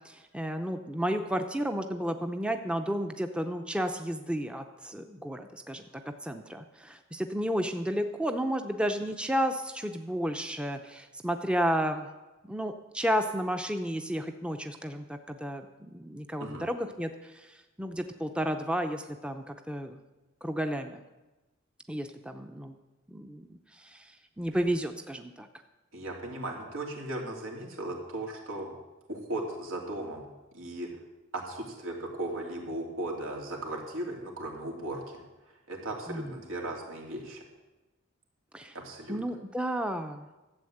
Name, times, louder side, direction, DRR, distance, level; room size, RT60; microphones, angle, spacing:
voice 1, 0.0-5.8 6.2-12.1 12.5-20.0 20.4-21.0 21.9-22.8 23.1-25.5 36.1-36.4 38.5-38.8 39.1-40.3, equal, 5° right, 6 dB, 0.6 m, -32 dB
voice 2, 25.9-28.7 29.1-30.3 30.5-30.9 31.3-35.2 35.7-37.4 38.7-39.2, right 1 dB, 90° right, 0 dB, 2.9 m, -37 dB
13.0 x 8.0 x 7.8 m, 1.1 s
head